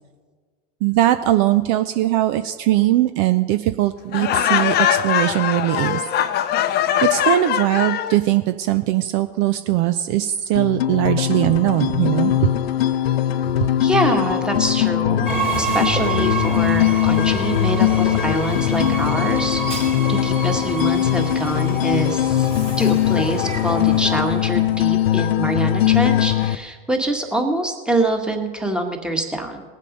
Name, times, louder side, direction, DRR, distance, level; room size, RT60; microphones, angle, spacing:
voice 1, 0.8-4.8 5.0-6.0 7.0-12.3, right 14 dB, 50° right, 11 dB, 0.5 m, -20 dB
Laughter, 4.1-8.2, left 10 dB, 35° left, 0.6 m, -21 dB
sound 1, 10.5-26.6, left 12 dB, 80° left, 0.6 m, -20 dB
voice 2, 13.8-15.3 15.6-19.6 20.1-22.5 22.8-29.6, right 1 dB, 5° right, 4 dB, 1.5 m, -24 dB
Train, 15.3-24.4, right 5 dB, 20° right, 3.2 m, -28 dB
19.0 x 7.5 x 5.3 m, 1.5 s
hypercardioid pair, 95°, 30 cm